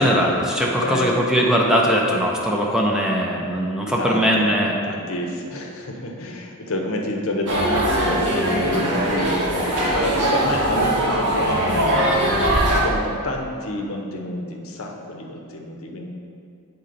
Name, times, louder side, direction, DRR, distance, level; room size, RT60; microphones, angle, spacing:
voice 1, 0.0-4.8, equal, 5° right, -2 dB, 0.5 m, -20 dB
voice 2, 0.8-1.2 4.0-4.5 4.8-11.5 12.0-16.1, left 1 dB, 65° left, 1 dB, 0.7 m, -29 dB
sound 1, 7.5-12.8, right 1 dB, 85° right, 1.3 m, -21 dB
8.0 x 4.2 x 3.8 m, 2.4 s
head